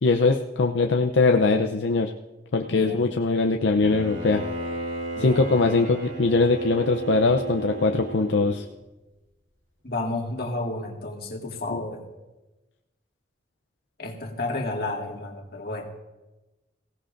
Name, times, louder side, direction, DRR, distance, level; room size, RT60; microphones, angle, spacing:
voice 1, 0.0-2.1 2.5-4.4 5.2-8.6 11.7-11.8, left 3 dB, 75° left, 3 dB, 0.6 m, -21 dB
voice 2, 2.7-3.1 5.2-5.7 9.8-12.1 14.0-16.0, left 2 dB, 55° left, 1 dB, 1.9 m, -32 dB
Bowed string instrument, 3.8-8.7, right 2 dB, 80° right, 2.8 m, -34 dB
22.0 x 16.5 x 2.6 m, 1.1 s
head